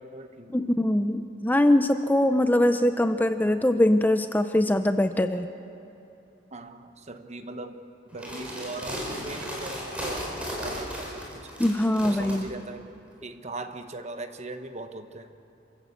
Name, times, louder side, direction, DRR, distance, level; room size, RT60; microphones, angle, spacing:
voice 1, 0.0-0.6 6.5-7.8 8.1-11.4 12.0-12.8 13.2-15.3, right 2 dB, 35° right, 8 dB, 1.1 m, -39 dB
voice 2, 0.5-5.5 11.6-12.5, left 1 dB, 10° left, 9 dB, 0.5 m, -22 dB
sound 1, 8.1-12.4, equal, 5° right, 4.5 m, -35 dB
27.0 x 14.5 x 8.3 m, 2.8 s
head